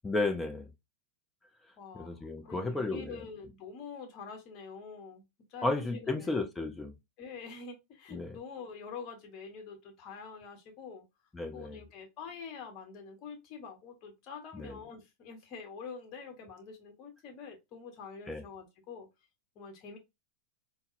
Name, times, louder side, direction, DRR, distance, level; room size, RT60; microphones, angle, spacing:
voice 1, 0.0-0.7 1.9-3.2 5.6-6.9 8.1-8.4 11.3-11.8 14.5-14.8 18.3-18.4, left 2 dB, 10° left, 0.6 m, -33 dB
voice 2, 1.8-5.2 5.5-6.3 7.2-11.0 11.5-19.1 19.5-20.0, left 5 dB, 40° left, 1.0 m, -46 dB
3.9 x 2.0 x 2.5 m
figure-of-eight pair, 90°, 0 cm